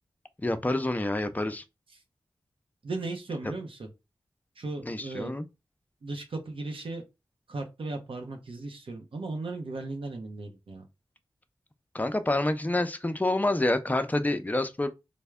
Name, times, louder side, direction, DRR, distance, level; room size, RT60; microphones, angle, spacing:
voice 1, 0.4-1.6 4.8-5.5 11.9-14.9, left 2 dB, 20° left, 0.5 m, -27 dB
voice 2, 2.8-3.9 4.6-5.3 6.0-7.0 7.5-10.9, right 3 dB, 75° right, 0.7 m, -36 dB
3.2 x 2.1 x 3.5 m
cardioid pair, 50°, 9 cm